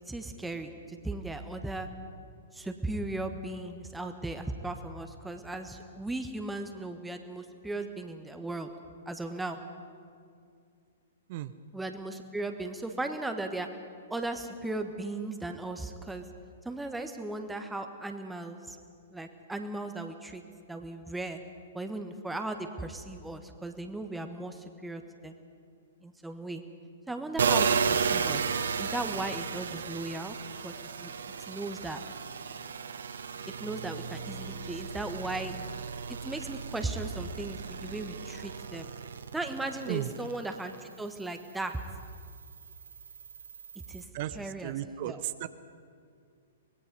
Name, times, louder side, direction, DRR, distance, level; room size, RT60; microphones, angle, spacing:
voice 1, 0.1-1.9 2.5-8.7 9.1-9.6 11.7-13.7 14.1-16.2 16.6-18.8 19.1-20.4 20.7-21.4 21.7-25.4 26.0-26.6 27.1-28.5 28.8-30.4 30.6-30.7 31.0-31.1 31.4-32.0 33.6-35.6 36.1-38.9 39.3-41.8 43.9-44.1 44.3-44.7 45.0-45.2, right 2 dB, 5° right, 6 dB, 1.3 m, -37 dB
sound 1, 27.4-40.7 41.2-44.0, right 6 dB, 65° right, 1.2 m, -34 dB
voice 2, 44.1-45.5, right 13 dB, 45° right, 13 dB, 0.8 m, -35 dB
24.5 x 20.5 x 5.4 m, 2.3 s
figure-of-eight pair, 110°, 0 cm